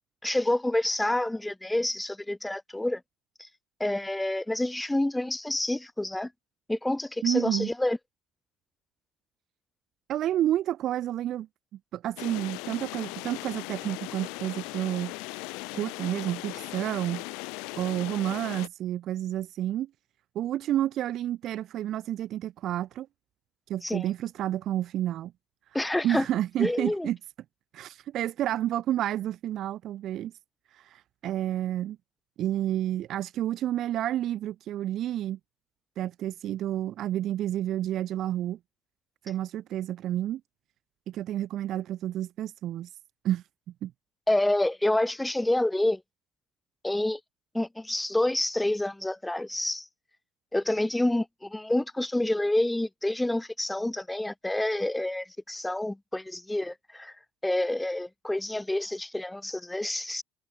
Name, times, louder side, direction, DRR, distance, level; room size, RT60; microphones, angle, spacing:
voice 1, 0.2-3.0 3.4-3.5 3.8-6.3 6.7-8.0 23.8-24.0 25.7-26.2 26.6-27.1 44.3-46.0 46.8-47.2 47.5-49.9 50.5-57.1 57.4-60.2, left 1 dB, 10° left, 1.5 m, -28 dB
voice 2, 7.2-7.7 10.1-11.5 11.9-15.1 15.7-19.9 20.4-23.1 23.7-25.3 26.0-27.2 27.7-30.3 30.7-32.0 32.4-35.4 36.0-38.6 39.2-40.4 41.1-43.0 43.2-43.5 43.8-43.9, right 12 dB, 55° right, 0.4 m, -30 dB
sound 1, 12.2-18.7, left 29 dB, 65° left, 0.9 m, -38 dB
hypercardioid pair, 60°, 0 cm